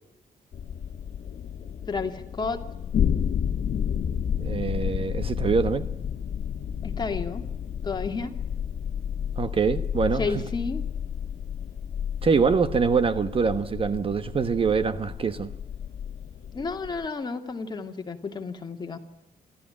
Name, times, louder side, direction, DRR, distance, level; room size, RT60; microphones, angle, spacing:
sound 1, 0.5-17.1, left 8 dB, 65° left, 1.5 m, -31 dB
voice 1, 1.9-2.6 6.8-7.4 7.8-8.3 10.1-10.8 16.5-19.0, left 4 dB, 30° left, 2.5 m, -31 dB
voice 2, 4.4-5.9 9.4-10.3 12.2-15.5, right 5 dB, 40° right, 1.2 m, -24 dB
26.0 x 14.5 x 10.0 m
cardioid pair, 135°, 15 cm